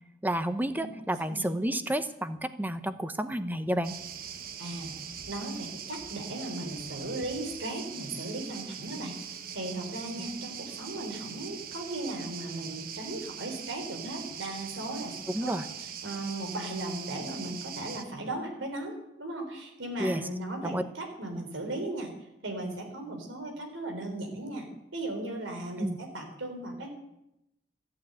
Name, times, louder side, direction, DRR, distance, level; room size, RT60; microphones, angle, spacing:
voice 1, 0.2-3.9 15.3-15.6 20.0-20.2 20.6-20.8 25.8-26.0, right 1 dB, 10° right, 10 dB, 0.8 m, -30 dB
sound 1, 3.8-18.0, right 8 dB, 50° right, 1.2 m, -42 dB
voice 2, 4.6-4.9 5.3-22.1 22.4-26.9, right 2 dB, 90° right, 4 dB, 3.9 m, -37 dB
14.5 x 8.8 x 9.0 m, 0.86 s
head